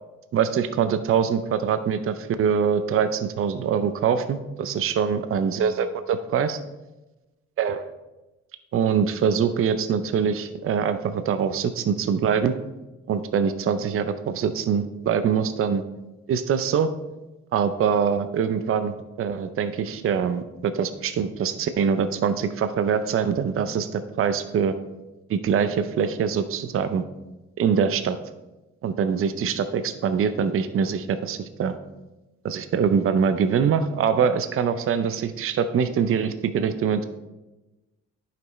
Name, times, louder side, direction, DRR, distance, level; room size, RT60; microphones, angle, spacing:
voice 1, 0.3-6.6 7.6-7.9 8.7-12.5 13.1-15.8 16.3-16.9 17.5-24.8 25.3-27.0 27.6-28.2 28.8-31.7 32.4-37.0, right 7 dB, 45° right, 10 dB, 0.6 m, -24 dB
10.5 x 5.8 x 3.2 m, 1.1 s
cardioid pair, 90°, 30 cm